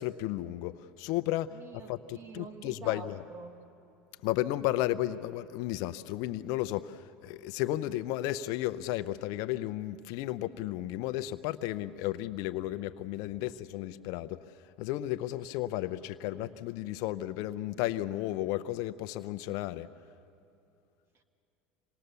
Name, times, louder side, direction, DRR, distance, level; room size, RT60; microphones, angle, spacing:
voice 1, 0.0-1.5 1.9-3.2 4.2-14.4 14.8-19.9, left 15 dB, 65° left, 13 dB, 0.7 m, -33 dB
voice 2, 1.5-3.5 13.4-13.5 21.1-21.2, right 4 dB, 40° right, 6 dB, 2.1 m, -47 dB
26.5 x 19.5 x 6.9 m, 2.7 s
supercardioid pair, 100°, 6 cm